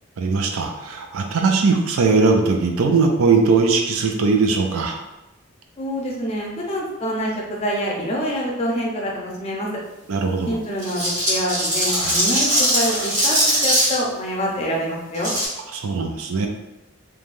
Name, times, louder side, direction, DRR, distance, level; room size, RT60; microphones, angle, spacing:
voice 1, 0.2-5.0 10.1-10.5 11.9-12.2 15.7-16.5, right 4 dB, 80° right, 3 dB, 0.4 m, -20 dB
voice 2, 5.8-9.7 10.5-15.3, equal, 30° left, -2 dB, 0.5 m, -26 dB
sound 1, 10.8-14.0 15.1-15.5, equal, 35° right, 1.3 m, -20 dB
3.2 x 2.2 x 2.5 m, 0.98 s
head